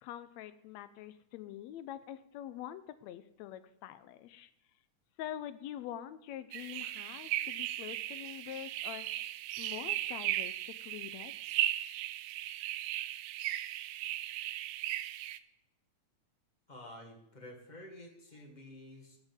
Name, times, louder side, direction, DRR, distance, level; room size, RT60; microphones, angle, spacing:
voice 1, 0.0-4.5 5.2-9.1 9.6-11.3, left 11 dB, 80° left, 12 dB, 1.8 m, -45 dB
sound 1, 6.5-15.4, right 14 dB, 80° right, 1.5 m, -37 dB
voice 2, 16.7-19.2, left 1 dB, 20° left, 1 dB, 1.4 m, -50 dB
18.0 x 8.1 x 3.7 m, 0.79 s
omnidirectional pair, 3.4 m